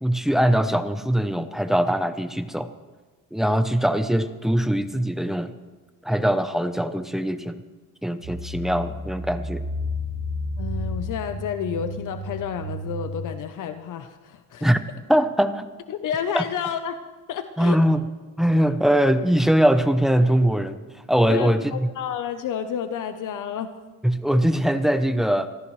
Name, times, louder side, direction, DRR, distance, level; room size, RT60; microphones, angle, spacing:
voice 1, 0.0-2.7 3.3-5.5 6.0-7.6 8.0-9.6 14.6-14.8 15.1-15.7 16.3-16.4 17.6-18.0 18.4-20.8 21.1-21.6 24.0-25.5, equal, ahead, 9 dB, 0.7 m, -21 dB
sound 1, 8.2-13.3, left 1 dB, 65° right, 3.8 m, -32 dB
voice 2, 10.6-14.7 15.9-17.0 17.3-17.8 21.3-23.7, left 8 dB, 65° left, 9 dB, 0.8 m, -30 dB
25.5 x 14.0 x 3.2 m, 1.3 s
cardioid pair, 140°, 34 cm